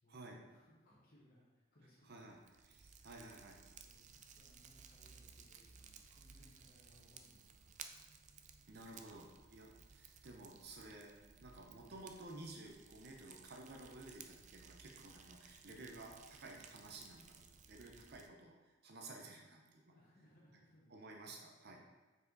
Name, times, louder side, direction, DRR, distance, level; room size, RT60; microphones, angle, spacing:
voice 1, 0.0-2.5 3.8-7.8 9.3-9.8 19.9-21.2 21.7-21.8, left 1 dB, 50° left, -7 dB, 1.4 m, -68 dB
voice 2, 2.0-2.4 2.6-3.6 8.7-11.1 11.4-19.9 20.9-21.8, right 2 dB, 55° right, 1 dB, 0.8 m, -54 dB
Fire, 2.1-18.3, right 6 dB, 40° right, 0.4 m, -59 dB
5.5 x 4.8 x 4.0 m, 1.3 s
head